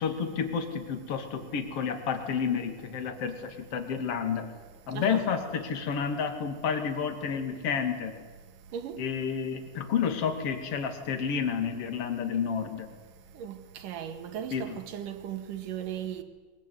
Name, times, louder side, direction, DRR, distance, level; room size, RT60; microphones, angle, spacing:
voice 1, 0.0-4.5 4.9-8.1 9.0-12.9 14.5-14.6, left 6 dB, 40° left, 3.1 m, -30 dB
voice 2, 4.9-5.3 8.7-9.0 13.3-16.2, right 9 dB, 60° right, 3.2 m, -37 dB
23.0 x 22.5 x 9.6 m
omnidirectional pair, 4.5 m